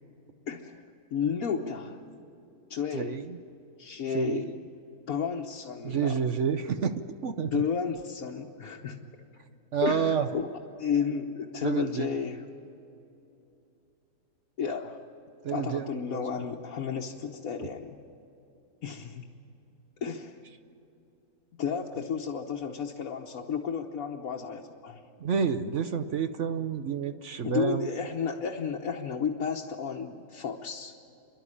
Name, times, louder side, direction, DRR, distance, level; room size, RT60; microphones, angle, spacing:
voice 1, 0.5-2.0 2.7-3.3 3.8-4.6 5.1-6.2 7.4-9.0 9.8-10.5 10.8-12.5 14.6-15.0 15.5-18.0 18.8-19.3 20.0-20.3 21.6-25.0 27.4-30.9, left 6 dB, 60° left, 0 dB, 1.4 m, -32 dB
voice 2, 2.9-3.4 4.1-4.5 5.8-7.6 9.7-10.3 11.6-12.2 15.4-16.2 25.2-27.9, right 7 dB, 55° right, 9 dB, 0.9 m, -29 dB
29.5 x 12.0 x 9.8 m, 2.8 s
omnidirectional pair, 1.7 m